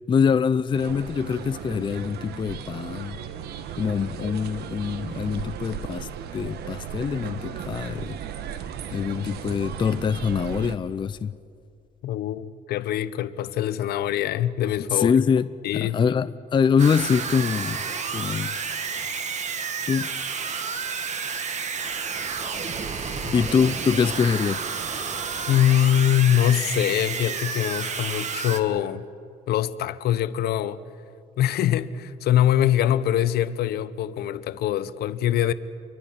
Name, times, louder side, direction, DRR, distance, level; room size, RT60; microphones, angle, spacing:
voice 1, 0.1-3.2 3.8-8.2 8.9-11.4 14.9-17.8 18.1-18.6 19.0-19.1 19.8-20.1 23.0-24.6, left 6 dB, 30° left, 0.5 m, -24 dB
sound 1, 0.7-10.7, right 8 dB, 75° right, 1.3 m, -36 dB
voice 2, 12.0-15.2 15.6-16.1 23.3-23.4 25.5-29.0 29.5-30.8 31.4-35.5, left 11 dB, 70° left, 0.9 m, -23 dB
sound 2, 16.8-28.6, right 5 dB, 45° right, 1.7 m, -30 dB
28.0 x 23.0 x 5.8 m
cardioid pair, 110°, 17 cm